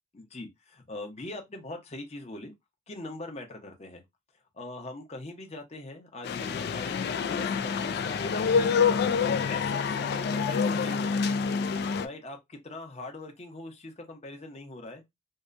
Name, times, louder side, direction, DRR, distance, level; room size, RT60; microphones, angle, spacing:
voice 1, 0.1-2.5 2.9-4.0 4.5-8.5 8.9-11.3 12.0-15.0, left 2 dB, 35° left, 0.7 m, -42 dB
sound 1, 6.2-12.1, left 6 dB, 55° left, 0.3 m, -27 dB
2.7 x 2.1 x 2.4 m
head